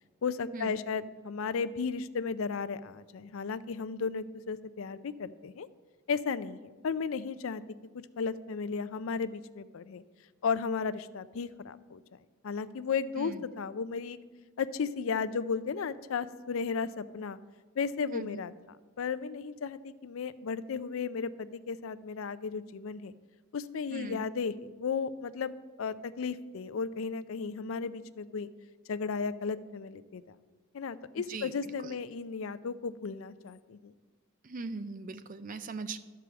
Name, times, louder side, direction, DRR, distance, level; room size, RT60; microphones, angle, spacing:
voice 1, 0.2-5.7 6.1-7.6 8.2-10.0 10.4-12.0 12.4-14.2 14.6-17.4 17.8-18.5 19.0-23.1 23.5-25.5 25.8-28.5 28.9-30.3 30.7-33.9, left 5 dB, 70° left, 15 dB, 0.4 m, -34 dB
voice 2, 18.1-18.4 23.9-24.2 31.3-32.0 34.4-36.0, right 3 dB, 40° right, 12 dB, 0.5 m, -40 dB
12.0 x 4.8 x 6.9 m, 1.4 s
head